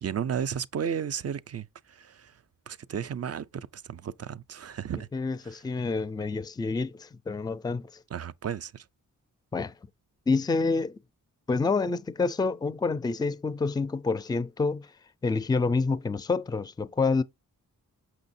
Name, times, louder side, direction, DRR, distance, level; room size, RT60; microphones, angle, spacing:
voice 1, 0.0-2.4 2.7-5.1 5.4-5.6 8.1-8.8, right 8 dB, 50° right, 0.5 m, -34 dB
voice 2, 5.1-7.9 9.5-9.7 10.3-11.0 11.5-14.9 15.2-17.2, left 4 dB, 10° left, 0.4 m, -28 dB
6.5 x 6.1 x 2.6 m
wide cardioid pair, 90°, 34 cm